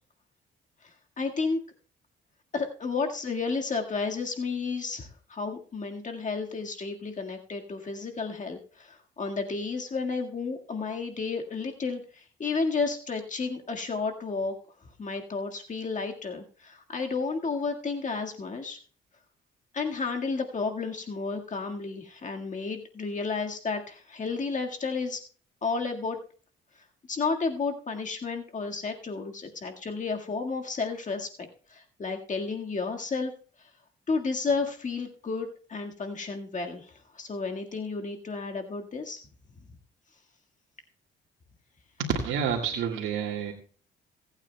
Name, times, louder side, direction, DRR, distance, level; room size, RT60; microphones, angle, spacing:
voice 1, 1.2-1.6 2.5-14.5 15.0-18.8 19.7-25.2 25.6-26.2 27.1-31.3 31.7-33.3 34.1-39.2, left 4 dB, 40° left, 3 dB, 1.7 m, -32 dB
voice 2, 42.0-43.5, right 7 dB, 85° right, -1 dB, 1.8 m, -29 dB
26.5 x 8.9 x 2.2 m, 0.42 s
cardioid pair, 90°, 20 cm